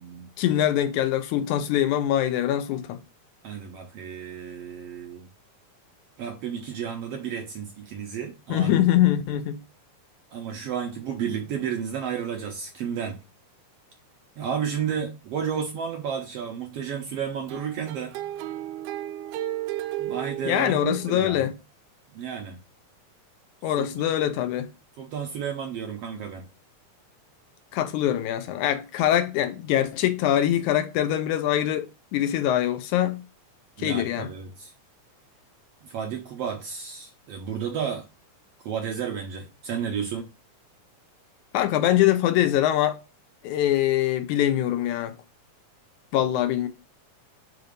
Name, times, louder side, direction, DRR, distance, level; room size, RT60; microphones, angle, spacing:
voice 1, 0.4-3.0 8.5-9.6 20.5-21.5 23.6-24.7 27.7-33.2 33.8-34.3 41.5-43.0 43.4-45.2 46.1-46.7, left 12 dB, 80° left, 2.0 m, -23 dB
voice 2, 3.4-5.3 6.2-8.8 10.3-13.2 14.4-18.1 20.0-21.4 22.1-22.6 23.8-24.0 25.0-26.5 33.8-34.7 35.8-38.1 38.6-40.3, right 7 dB, 70° right, 1.5 m, -32 dB
sound 1, 17.5-21.3, right 13 dB, 90° right, 2.1 m, -34 dB
5.1 x 3.9 x 5.0 m
omnidirectional pair, 3.6 m